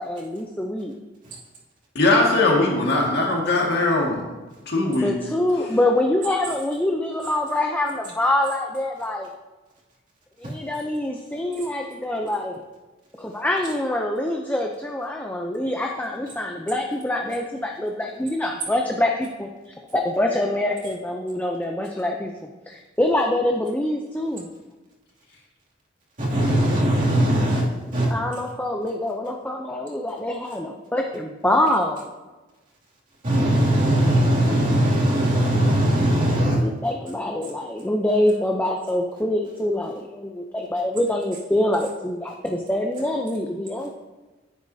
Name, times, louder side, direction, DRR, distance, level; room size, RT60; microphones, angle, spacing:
voice 1, 0.0-0.9 4.9-9.3 10.4-12.6 13.2-24.5 27.8-32.1 36.3-43.9, left 1 dB, 10° left, 1 dB, 0.5 m, -25 dB
voice 2, 1.9-4.4 4.7-5.1, left 2 dB, 60° left, -1 dB, 1.9 m, -20 dB
voice 3, 26.2-27.7 27.9-28.1 33.2-36.6, right 1 dB, 45° right, -6 dB, 2.5 m, -20 dB
10.0 x 8.5 x 2.7 m, 1.2 s
head